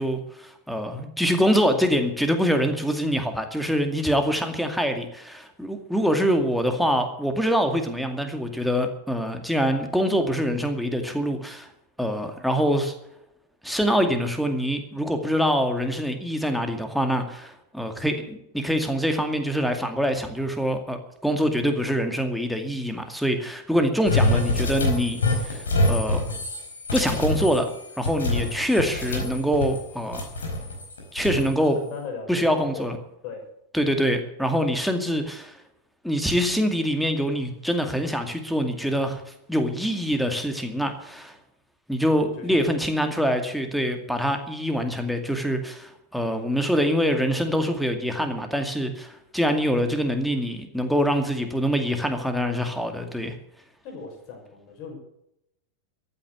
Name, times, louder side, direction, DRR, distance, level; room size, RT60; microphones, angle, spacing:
voice 1, 0.0-11.7 12.0-12.9 13.6-26.2 26.9-27.7 28.0-30.2 31.1-31.8 32.3-33.0 33.7-35.6 36.0-39.2 39.5-41.4 41.9-53.4, equal, ahead, 6 dB, 2.3 m, -25 dB
sound 1, 24.0-29.8 30.1-31.5, left 2 dB, 70° left, 4.6 m, -26 dB
voice 2, 31.7-32.9 33.2-33.5 42.2-42.8 53.8-55.0, left 5 dB, 40° left, 2 dB, 6.2 m, -38 dB
14.0 x 9.8 x 8.2 m, 0.80 s
figure-of-eight pair, 90°, 0 cm